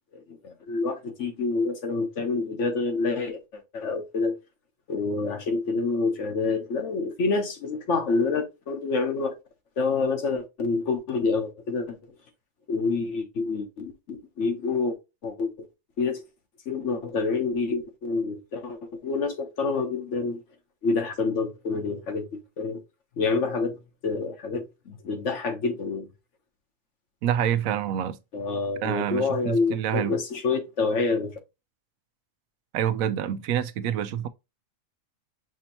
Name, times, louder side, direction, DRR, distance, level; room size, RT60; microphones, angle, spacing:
voice 1, 0.1-4.4 4.9-9.3 9.8-12.0 12.7-15.0 15.2-15.7 16.0-16.2 16.7-20.4 20.8-22.8 23.2-26.1 28.3-31.3, left 4 dB, 65° left, 1.3 m, -27 dB
voice 2, 27.2-28.2 28.8-30.2 32.7-34.3, right 10 dB, 90° right, 1.0 m, -27 dB
6.1 x 2.8 x 2.8 m
omnidirectional pair, 1.4 m